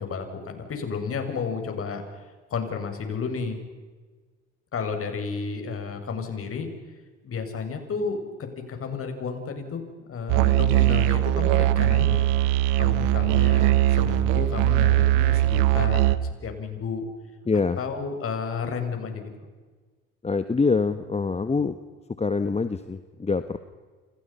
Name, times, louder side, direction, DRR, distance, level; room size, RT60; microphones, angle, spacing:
voice 1, 0.0-2.0 2.5-3.6 4.7-6.7 7.2-8.2 8.7-12.2 12.8-16.0 16.4-17.1 17.8-19.3, left 5 dB, 45° left, 5 dB, 7.0 m, -31 dB
Musical instrument, 10.3-16.2, right 15 dB, 70° right, 1.4 m, -20 dB
voice 2, 17.5-17.8 20.2-21.8 22.2-23.6, left 4 dB, 20° left, 10 dB, 1.4 m, -25 dB
30.0 x 29.0 x 5.7 m, 1.4 s
hypercardioid pair, 70°, 32 cm